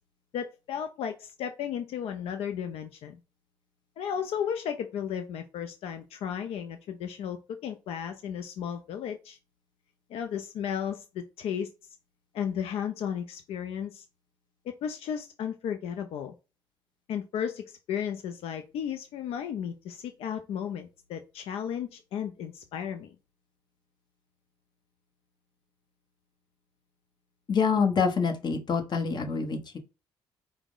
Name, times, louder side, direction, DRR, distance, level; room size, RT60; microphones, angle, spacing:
voice 1, 0.3-3.2 4.0-9.4 10.1-11.7 12.3-14.0 14.8-16.3 17.1-23.1, left 8 dB, 80° left, 7 dB, 0.4 m, -34 dB
voice 2, 27.5-29.8, left 5 dB, 45° left, 4 dB, 1.0 m, -26 dB
4.6 x 2.1 x 3.7 m, 0.29 s
cardioid pair, 85°, 10 cm